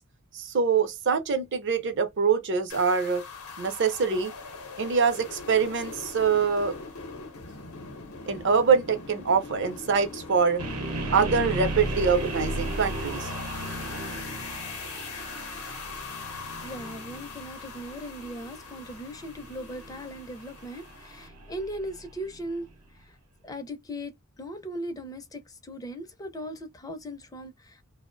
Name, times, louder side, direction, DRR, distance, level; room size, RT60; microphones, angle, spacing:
voice 1, 0.3-3.2 3.6-4.3 4.8-6.7 8.3-10.6 11.1-13.3, right 5 dB, 55° right, 0.6 m, -24 dB
sound 1, 2.7-21.3, left 4 dB, 85° left, 0.6 m, -42 dB
sound 2, 10.6-22.5, right 1 dB, 90° right, 0.8 m, -36 dB
voice 2, 16.2-22.7 23.0-23.2 23.4-27.8, equal, 15° left, 0.4 m, -38 dB
2.5 x 2.0 x 2.5 m
head